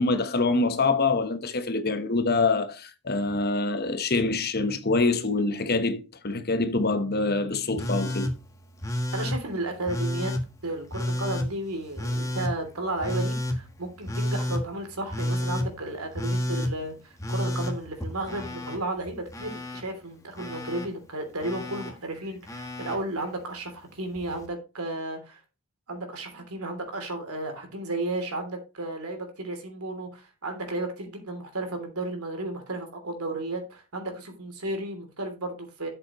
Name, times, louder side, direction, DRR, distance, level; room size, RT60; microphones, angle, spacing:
voice 1, 0.0-8.3, left 3 dB, 45° left, 1.1 m, -25 dB
Telephone, 7.8-8.3 8.8-9.4 9.9-10.4 10.9-11.5 12.0-12.5 13.0-13.6 14.1-14.6 15.1-15.7 16.2-16.7 17.2-18.8 19.1-19.8 20.4-20.9 21.4-21.9 22.5-23.0 24.2-24.3, left 1 dB, 15° left, 1.4 m, -30 dB
voice 2, 9.1-10.3 10.6-25.4 25.9-35.9, right 2 dB, 85° right, 3.1 m, -33 dB
11.5 x 7.7 x 3.1 m
head